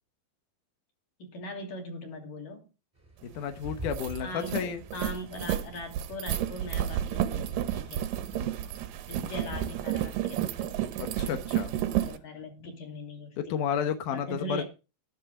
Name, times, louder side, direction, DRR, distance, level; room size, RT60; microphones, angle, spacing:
voice 1, 1.2-2.7 4.2-8.1 9.1-10.8 11.9-13.6 14.1-14.6, left 1 dB, 50° left, 2 dB, 4.1 m, -40 dB
sound 1, 3.0-10.7, right 2 dB, 5° right, 1.6 m, -47 dB
voice 2, 3.2-4.8 8.3-8.6 11.0-11.7 13.4-14.6, left 8 dB, 80° left, 8 dB, 1.8 m, -32 dB
sound 2, 3.3-3.4 3.7-12.2, right 12 dB, 80° right, 1.9 m, -31 dB
13.0 x 12.0 x 3.7 m, 0.31 s
omnidirectional pair, 5.2 m